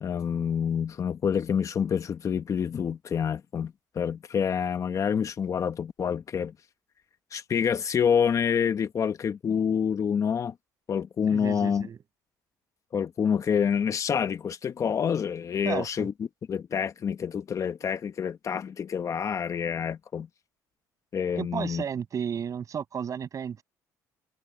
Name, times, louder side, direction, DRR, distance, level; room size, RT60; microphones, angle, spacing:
voice 1, 0.0-6.5 7.3-10.5 10.9-11.9 12.9-16.1 16.5-20.3 21.1-21.8, left 7 dB, 45° left, 1.3 m, -27 dB
voice 2, 11.3-12.0 15.6-16.1 21.4-23.6, right 7 dB, 45° right, 7.6 m, -33 dB
supercardioid pair, 85°, 8 cm